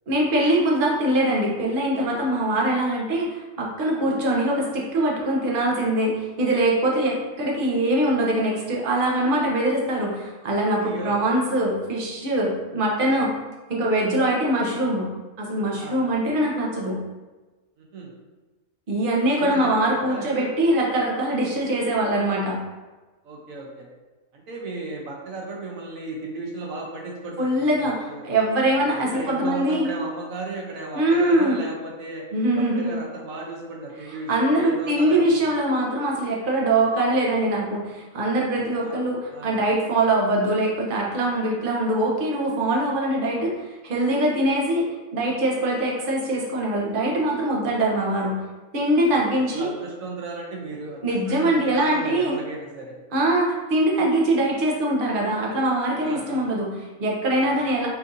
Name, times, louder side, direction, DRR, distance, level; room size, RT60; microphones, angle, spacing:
voice 1, 0.1-13.3 13.7-15.1 15.4-17.0 18.9-22.6 27.4-29.9 30.9-31.6 32.3-32.9 34.3-43.5 43.8-48.4 48.7-49.7 51.0-52.3 53.1-57.9, right 1 dB, 45° right, -3 dB, 0.8 m, -23 dB
voice 2, 10.8-11.1 13.1-13.3 14.0-14.1 15.8-16.0 17.8-18.1 19.4-20.5 23.2-23.9 24.3-28.2 28.7-32.3 32.6-35.2 38.5-39.0 39.3-39.6 49.5-53.0 56.0-56.5 57.4-57.7, right 2 dB, 75° right, -1 dB, 1.1 m, -35 dB
5.2 x 2.6 x 2.6 m, 1.2 s
omnidirectional pair, 1.5 m